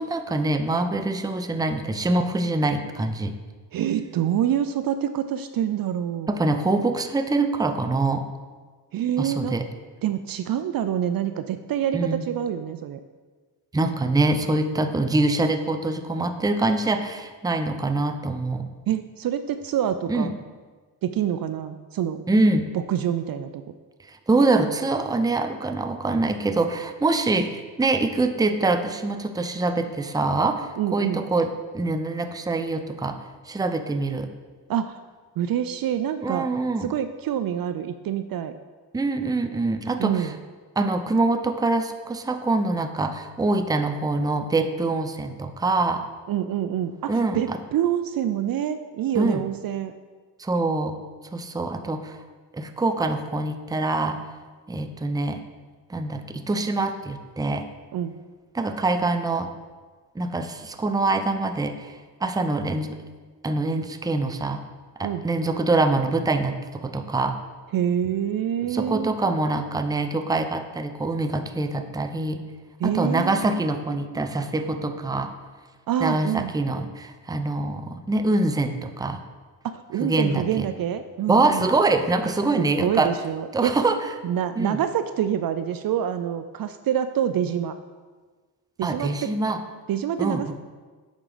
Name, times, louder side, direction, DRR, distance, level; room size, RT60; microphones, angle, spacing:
voice 1, 0.0-3.3 6.3-8.3 9.2-9.7 11.9-12.2 13.7-18.7 20.1-20.3 22.3-22.7 24.1-33.2 33.5-34.3 36.2-36.9 38.9-40.3 40.8-46.0 47.1-47.6 49.1-49.4 50.4-51.0 51.3-52.2 52.5-54.2 54.7-55.4 55.9-57.7 58.5-59.5 60.2-63.0 63.4-64.6 65.0-67.4 68.7-72.4 72.8-75.3 76.0-79.2 80.0-80.7 81.3-83.1 83.5-84.0 84.6-84.8 88.8-89.6 90.2-90.5, right 2 dB, 10° right, 8 dB, 0.5 m, -24 dB
voice 2, 3.7-6.4 8.9-9.6 10.0-13.0 18.9-20.3 21.0-22.2 22.7-23.7 30.8-31.2 34.7-35.0 35.4-36.5 36.8-38.5 40.0-40.3 46.3-49.9 57.9-58.1 65.0-65.2 67.7-69.3 72.8-73.7 75.9-76.5 79.6-81.7 82.6-83.8 84.2-87.7 88.8-89.3 89.9-90.5, right 10 dB, 55° right, 10 dB, 0.5 m, -26 dB
8.8 x 3.7 x 5.0 m, 1.4 s
cardioid pair, 70°, 44 cm